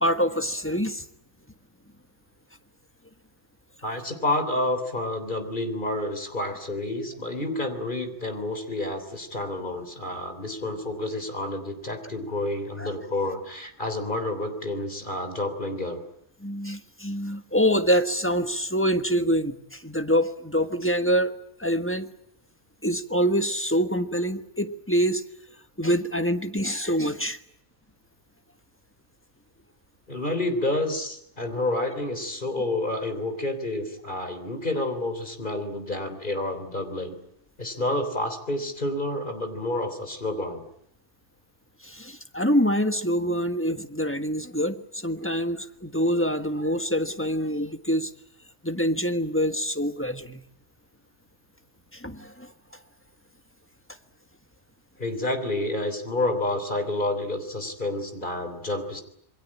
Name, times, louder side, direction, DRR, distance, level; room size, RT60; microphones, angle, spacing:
voice 1, 0.0-1.0 12.8-12.9 16.4-21.3 21.6-22.1 22.8-25.2 25.8-27.4 41.8-48.1 48.6-50.4 51.9-52.5, equal, 10° left, 8 dB, 1.4 m, -25 dB
voice 2, 3.8-16.0 30.1-37.2 37.6-40.7 55.0-59.0, left 1 dB, 45° left, 8 dB, 3.7 m, -29 dB
27.5 x 22.0 x 8.8 m, 0.75 s
omnidirectional pair, 1.2 m